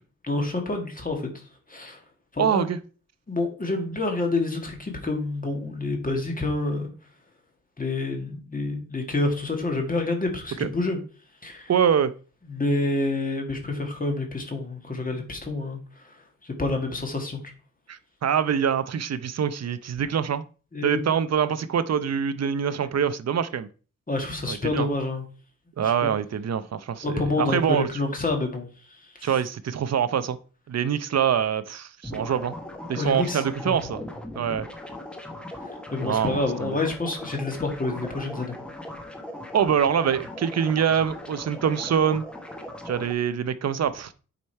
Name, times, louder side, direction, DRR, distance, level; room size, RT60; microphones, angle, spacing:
voice 1, 0.2-1.4 1.7-2.0 2.3-2.7 3.3-6.9 7.8-11.0 11.4-11.7 12.5-17.4 20.7-21.0 24.1-25.2 25.8-26.1 27.0-29.3 32.9-33.8 35.6-38.6, left 2 dB, 25° left, 3 dB, 1.8 m, -28 dB
voice 2, 2.4-2.8 10.6-10.7 11.7-12.1 17.9-20.4 20.8-23.7 24.5-24.9 25.8-27.9 29.2-30.4 30.7-32.6 32.9-34.0 34.4-34.7 36.0-36.7 39.5-42.2 42.9-44.1, right 8 dB, 55° right, 14 dB, 0.7 m, -24 dB
sound 1, 32.0-43.1, left 1 dB, 5° left, 1.2 m, -39 dB
8.5 x 5.2 x 4.5 m, 0.38 s
wide cardioid pair, 155°, 31 cm